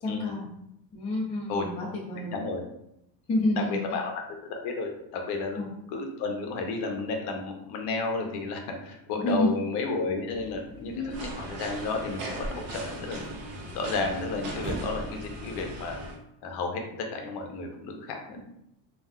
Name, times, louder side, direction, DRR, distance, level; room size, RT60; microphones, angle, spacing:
voice 1, 0.0-0.5 0.9-2.4 3.3-4.0 5.5-5.7 9.2-9.5 10.9-11.2 18.3-18.4, left 1 dB, 15° left, -4 dB, 0.3 m, -29 dB
voice 2, 2.3-2.6 3.7-5.6 5.9-13.3 13.7-16.0 16.4-18.4, left 3 dB, 60° left, 2 dB, 0.7 m, -32 dB
sound 1, 10.3-16.1, equal, 35° right, 0.7 m, -44 dB
sound 2, 11.1-16.2, right 2 dB, 80° right, 0.8 m, -38 dB
2.4 x 2.2 x 3.5 m, 0.80 s
cardioid pair, 165°, 45 cm